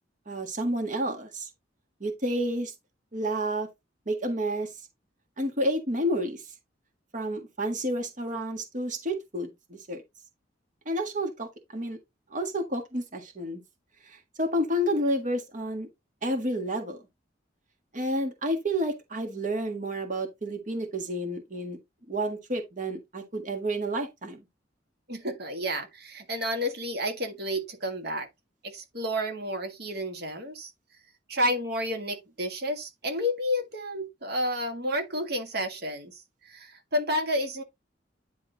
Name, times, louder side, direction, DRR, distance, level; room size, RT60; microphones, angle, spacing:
voice 1, 0.3-1.5 2.0-2.7 3.1-3.7 4.1-4.7 5.4-6.4 7.1-10.0 10.8-12.0 12.3-13.6 14.0-15.9 16.2-17.0 17.9-21.8 22.1-24.4, equal, 45° right, 1.6 m, -30 dB
voice 2, 25.1-28.3 28.6-30.7 31.3-37.6, equal, 60° right, 1.8 m, -31 dB
10.5 x 3.6 x 4.0 m
head